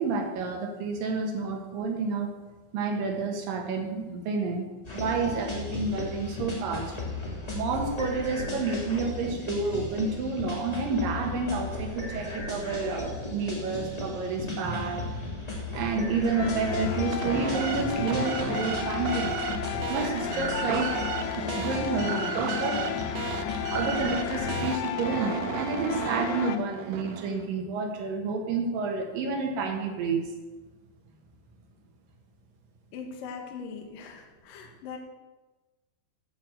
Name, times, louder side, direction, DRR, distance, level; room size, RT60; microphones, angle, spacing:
voice 1, 0.0-2.3 2.7-4.7 4.9-7.0 7.5-15.2 15.7-19.4 19.9-22.8 23.4-30.2, right 3 dB, 60° right, 3 dB, 2.6 m, -30 dB
sound 1, 4.8-24.6, left 1 dB, 25° left, 0.9 m, -36 dB
sound 2, 16.3-26.6, left 11 dB, 80° left, 2.5 m, -34 dB
sound 3, 16.9-27.5, right 9 dB, 85° right, 3.0 m, -35 dB
voice 2, 32.9-35.0, left 5 dB, 60° left, 2 dB, 2.6 m, -40 dB
11.5 x 6.7 x 7.8 m, 1.2 s
omnidirectional pair, 5.4 m